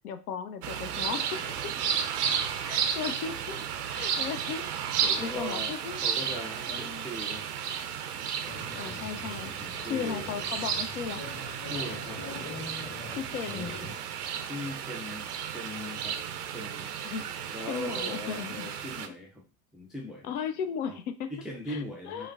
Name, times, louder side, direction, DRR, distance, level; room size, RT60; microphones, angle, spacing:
voice 1, 0.0-1.6 2.6-3.6 3.9-4.7 5.0-6.0 6.7-7.1 8.7-9.5 9.8-11.2 13.1-13.7 17.0-17.3 17.7-18.7 20.2-21.3 21.7-22.3, left 7 dB, 65° left, 9 dB, 0.6 m, -36 dB
sound 1, 0.6-19.1, right 8 dB, 70° right, 0.6 m, -33 dB
voice 2, 5.0-7.5 9.6-10.3 11.4-12.4 14.5-16.2 16.5-16.9 17.4-19.4 19.7-20.3 20.9-21.0 21.3-22.3, left 1 dB, ahead, 0 dB, 0.3 m, -40 dB
sound 2, 8.5-13.9, left 3 dB, 20° left, 0.8 m, -43 dB
4.9 x 2.1 x 2.3 m, 0.33 s
figure-of-eight pair, 65°, 48 cm